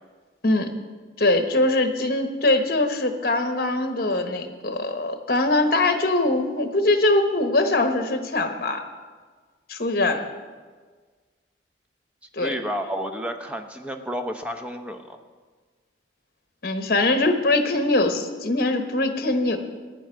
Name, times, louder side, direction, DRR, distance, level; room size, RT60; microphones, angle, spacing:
voice 1, 1.2-8.8 9.7-10.3 12.3-12.5 16.6-19.6, left 2 dB, 55° left, 6 dB, 1.1 m, -22 dB
voice 2, 12.4-15.2, equal, 5° right, 5 dB, 0.7 m, -31 dB
15.0 x 9.2 x 4.5 m, 1.5 s
head